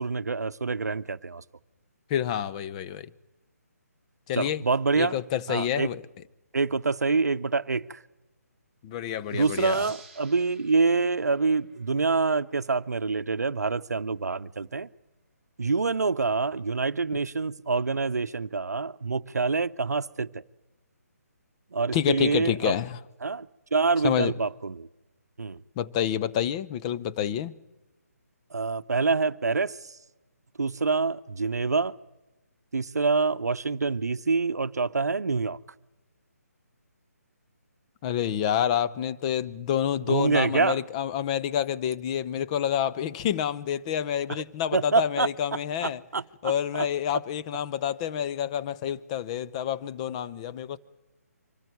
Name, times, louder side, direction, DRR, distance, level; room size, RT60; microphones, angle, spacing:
voice 1, 0.0-1.4 4.3-5.2 5.5-5.9 6.5-8.0 9.3-14.9 15.6-20.4 21.7-22.7 23.2-24.9 25.4-25.6 28.5-29.8 30.6-31.9 32.7-35.6 40.1-40.8 44.7-45.3 45.8-46.9, right 4 dB, 85° right, 0.7 m, -26 dB
voice 2, 2.1-3.1 4.3-4.6 5.0-6.0 8.8-9.8 21.9-23.0 24.0-24.3 25.8-27.5 38.0-46.0 46.4-50.8, left 9 dB, 25° left, 0.7 m, -28 dB
sound 1, 9.3-12.5, right 4 dB, 5° left, 3.8 m, -52 dB
25.0 x 13.5 x 9.3 m
figure-of-eight pair, 150°, 9 cm